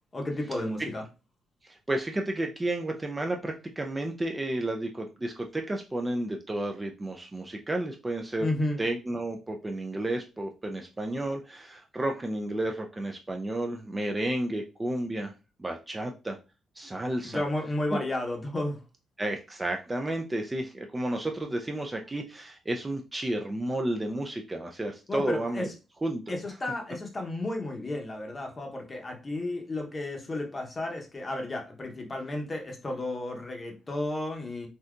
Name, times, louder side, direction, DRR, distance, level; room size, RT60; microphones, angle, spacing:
voice 1, 0.1-1.0 8.4-8.8 17.2-18.8 25.1-25.7 26.3-34.7, left 1 dB, 25° left, 0.7 m, -32 dB
voice 2, 1.6-8.5 8.8-15.3 15.6-16.4 16.8-17.4 19.2-25.7 26.0-26.3, right 1 dB, 15° right, 0.3 m, -32 dB
3.5 x 2.6 x 2.3 m
cardioid pair, 130°, 0 cm